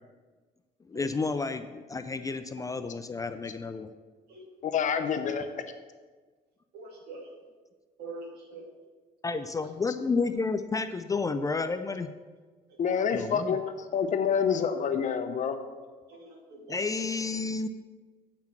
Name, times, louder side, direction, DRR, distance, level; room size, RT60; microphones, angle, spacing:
voice 1, 0.9-3.9 9.2-12.1 13.1-13.6 16.7-17.7, left 4 dB, 20° left, 10 dB, 0.4 m, -31 dB
voice 2, 4.6-5.5 12.8-15.6, left 7 dB, 45° left, 8 dB, 0.8 m, -27 dB
voice 3, 6.7-7.3 8.0-8.7 9.3-9.4 16.1-16.8, right 3 dB, 70° right, 1 dB, 2.3 m, -44 dB
8.7 x 5.9 x 5.9 m, 1.4 s
cardioid pair, 110°, 17 cm